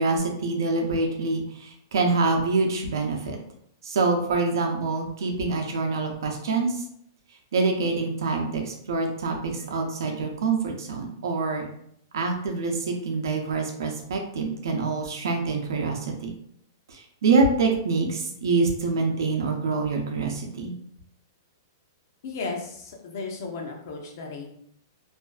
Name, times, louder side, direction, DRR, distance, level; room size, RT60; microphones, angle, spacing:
voice 1, 0.0-3.4 3.8-6.7 7.5-11.7 12.1-16.3 16.9-20.7, right 3 dB, 75° right, 2 dB, 0.6 m, -25 dB
voice 2, 22.2-24.5, left 4 dB, 50° left, 2 dB, 0.6 m, -35 dB
2.5 x 2.4 x 2.3 m, 0.70 s
hypercardioid pair, 170°, 2 cm